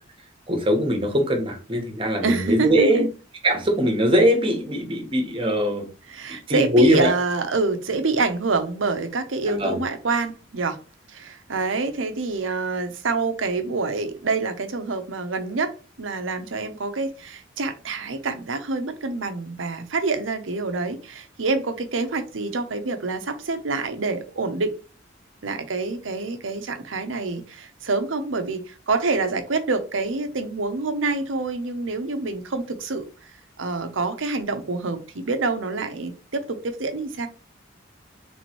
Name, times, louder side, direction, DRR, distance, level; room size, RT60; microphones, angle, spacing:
voice 1, 0.5-3.1 3.4-5.8 6.3-7.1 9.5-9.8, equal, 30° right, 1.1 m, -21 dB
voice 2, 2.2-3.1 6.1-10.8 11.1-24.7 25.4-33.3 33.6-37.3, right 3 dB, 90° right, 0.8 m, -27 dB
3.5 x 3.1 x 4.4 m
head